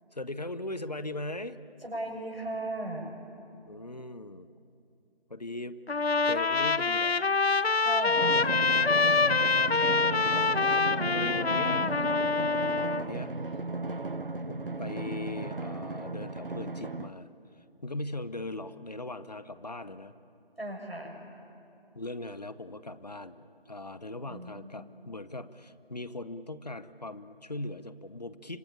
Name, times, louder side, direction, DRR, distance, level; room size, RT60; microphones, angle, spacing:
voice 1, 0.1-1.6 3.7-4.5 5.3-5.8 6.2-7.1 8.2-10.5 11.1-11.9 13.0-13.4 14.5-17.3 17.8-20.1 21.9-28.6, left 2 dB, 40° left, 14 dB, 1.0 m, -39 dB
voice 2, 1.8-3.1 7.8-8.3 10.9-12.0 20.6-21.2 24.3-25.0, right 1 dB, 80° right, 2 dB, 7.0 m, -37 dB
Trumpet, 5.9-13.0, left 4 dB, 90° left, 0.8 m, -26 dB
Drum, 8.2-17.1, right 3 dB, 60° right, 1.1 m, -35 dB
26.0 x 22.5 x 8.7 m, 2.7 s
figure-of-eight pair, 170°, 30 cm